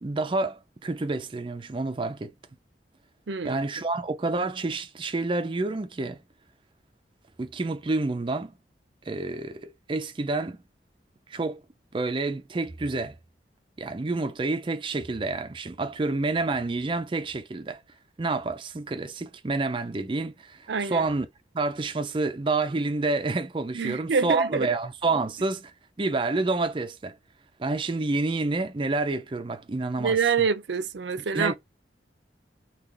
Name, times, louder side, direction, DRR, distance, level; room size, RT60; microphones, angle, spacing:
voice 1, 0.0-2.3 3.4-6.2 7.4-8.5 9.1-10.6 11.3-11.6 11.9-13.1 13.8-17.8 18.2-21.3 21.5-25.7 26.0-27.2 27.6-30.2 31.3-31.6, right 3 dB, 30° right, 0.4 m, -28 dB
voice 2, 3.3-3.6 20.7-21.1 23.7-24.7 30.0-31.6, right 5 dB, 80° right, 0.5 m, -26 dB
3.7 x 2.4 x 3.1 m
head